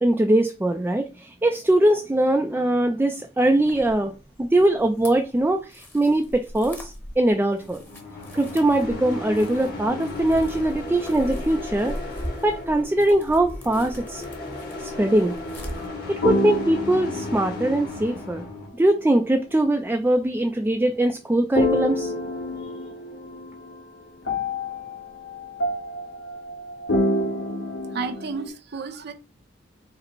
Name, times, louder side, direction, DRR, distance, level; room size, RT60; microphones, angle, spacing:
voice 1, 0.0-4.1 4.4-7.8 8.3-12.0 12.4-14.2 14.8-15.3 16.1-18.4 18.8-22.1, right 1 dB, 10° right, 0.3 m, -21 dB
sound 1, 3.6-15.9, equal, 10° left, 0.9 m, -40 dB
sound 2, 7.6-18.7, left 2 dB, 55° left, 1.5 m, -35 dB
sound 3, 16.2-18.5 21.5-23.8 24.2-28.5, left 1 dB, 90° left, 1.0 m, -28 dB
voice 2, 27.8-29.1, right 4 dB, 60° right, 0.6 m, -32 dB
4.9 x 2.0 x 4.5 m
head